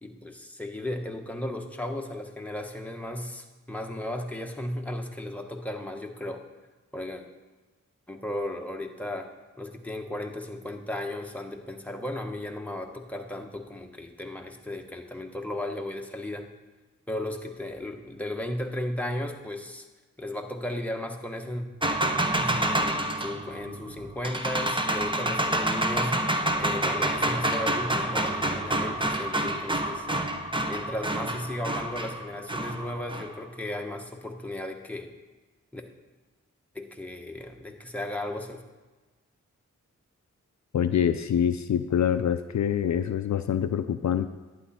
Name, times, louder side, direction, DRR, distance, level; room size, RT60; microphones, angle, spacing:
voice 1, 0.0-6.4 6.9-7.2 8.1-9.3 9.6-16.5 17.1-19.9 20.2-21.6 22.4-26.2 26.6-30.1 30.7-35.1 35.7-35.8 36.7-38.6, left 1 dB, 5° left, 2 dB, 1.3 m, -35 dB
sound 1, 21.8-33.4, right 1 dB, 15° right, 1.0 m, -28 dB
voice 2, 40.7-44.3, left 9 dB, 65° left, 10 dB, 0.5 m, -25 dB
11.0 x 9.3 x 4.3 m, 1.2 s
cardioid pair, 50°, 31 cm